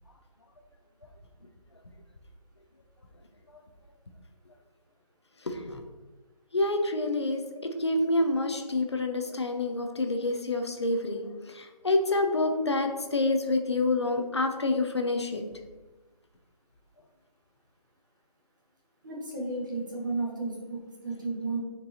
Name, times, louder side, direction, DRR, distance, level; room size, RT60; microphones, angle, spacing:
voice 1, 5.5-5.8 6.5-11.2 11.5-15.4, left 2 dB, 40° left, 5 dB, 0.7 m, -27 dB
voice 2, 19.0-20.8 21.0-21.6, right 3 dB, 30° right, -3 dB, 1.4 m, -33 dB
9.2 x 4.6 x 2.9 m, 1.2 s
hypercardioid pair, 180°, 21 cm